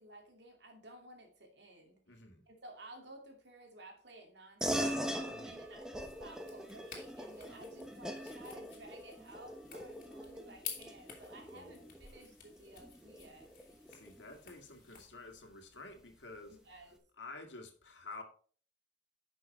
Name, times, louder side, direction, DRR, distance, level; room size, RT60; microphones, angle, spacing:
voice 1, 0.0-2.0 2.5-13.5 16.4-17.0, right 1 dB, 70° right, 2.5 m, -55 dB
voice 2, 2.1-2.4 5.3-5.6 11.4-11.9 13.9-16.6 17.2-18.2, left 3 dB, 85° left, 2.0 m, -50 dB
sound 1, 4.6-14.5, equal, 5° right, 1.0 m, -42 dB
sound 2, 6.1-15.1, left 8 dB, 45° left, 2.6 m, -52 dB
10.5 x 6.2 x 4.3 m
head